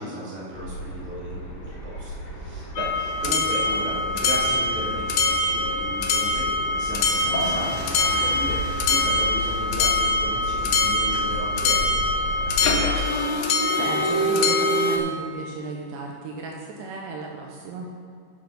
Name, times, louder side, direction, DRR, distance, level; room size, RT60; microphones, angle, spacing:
voice 1, 0.0-13.1, equal, 5° right, -8 dB, 0.8 m, -35 dB
sound 1, 0.5-13.0, left 1 dB, 60° left, 2.7 m, -35 dB
sound 2, 2.8-15.0, left 2 dB, 80° left, 2.8 m, -23 dB
sound 3, 7.0-13.8, left 2 dB, 45° left, 2.1 m, -38 dB
voice 2, 13.7-17.9, right 3 dB, 75° right, 0 dB, 2.6 m, -34 dB
8.4 x 7.5 x 5.8 m, 2.4 s
omnidirectional pair, 5.5 m